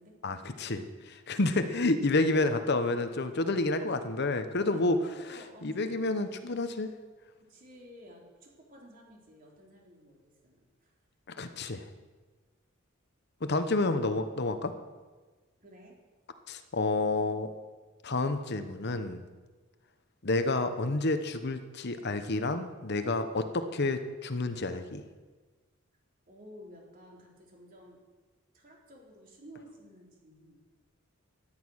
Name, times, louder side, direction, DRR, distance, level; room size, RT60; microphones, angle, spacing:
voice 1, 0.2-5.0 5.6-6.9 11.3-11.9 13.4-14.7 16.5-17.5 18.0-19.2 20.2-25.0, left 2 dB, 55° left, 9 dB, 1.0 m, -29 dB
voice 2, 4.6-6.0 7.4-10.9 15.6-16.0 26.3-28.0 28.5-30.6, right 1 dB, 45° right, -1 dB, 3.7 m, -52 dB
15.5 x 11.5 x 6.4 m, 1.3 s
head